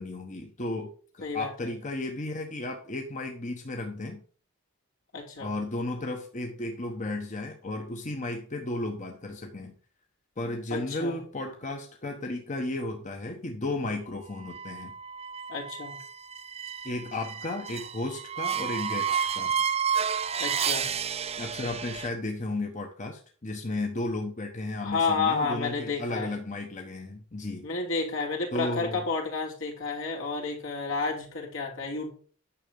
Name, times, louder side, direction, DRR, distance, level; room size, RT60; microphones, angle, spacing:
voice 1, 0.0-4.2 5.4-9.7 10.4-14.9 16.8-19.5 21.4-27.7 28.5-29.0, left 2 dB, 35° left, 3 dB, 1.1 m, -34 dB
voice 2, 1.2-1.7 5.1-5.5 10.7-11.2 15.5-16.0 20.4-20.9 24.8-26.3 27.6-32.1, left 4 dB, 70° left, -1 dB, 3.1 m, -31 dB
sound 1, 14.4-22.1, right 7 dB, 30° right, 0.5 m, -31 dB
9.9 x 6.4 x 5.4 m, 0.42 s
head